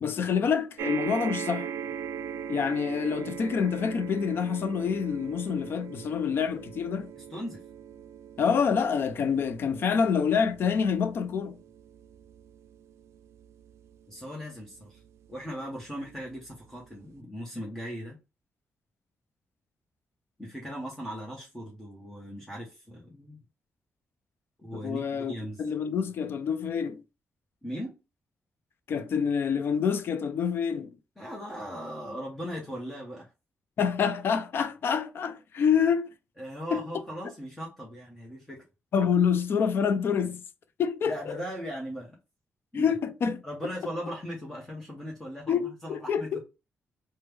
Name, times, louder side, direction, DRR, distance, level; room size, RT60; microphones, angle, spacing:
voice 1, 0.0-1.7 2.5-7.1 8.4-11.6 24.7-25.3 25.6-27.0 28.9-31.0 33.8-36.1 36.7-36.8 38.9-40.4 40.8-41.4 42.7-43.4 45.5-46.4, left 6 dB, 55° left, 0.4 m, -27 dB
sound 1, 0.8-15.3 16.1-16.2 16.4-16.5, right 8 dB, 80° right, 0.3 m, -40 dB
voice 2, 7.2-7.6 14.1-15.0 15.3-18.2 20.4-23.4 24.6-25.6 27.6-27.9 31.2-33.3 36.4-38.6 41.1-42.1 42.7-42.9 43.4-46.3, equal, 10° left, 0.9 m, -38 dB
3.2 x 2.1 x 3.2 m
wide cardioid pair, 160°, 5 cm